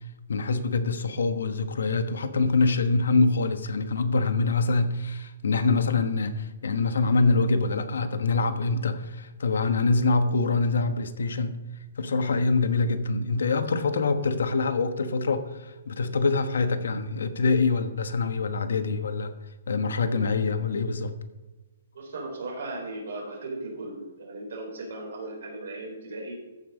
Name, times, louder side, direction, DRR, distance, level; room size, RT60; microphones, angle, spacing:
voice 1, 0.3-11.6 12.0-19.3 19.7-21.1, left 3 dB, 90° left, 9 dB, 1.1 m, -25 dB
voice 2, 21.9-26.3, right 2 dB, 60° right, -1 dB, 4.0 m, -37 dB
14.0 x 5.4 x 5.2 m, 1.1 s
hypercardioid pair, 180°, 0 cm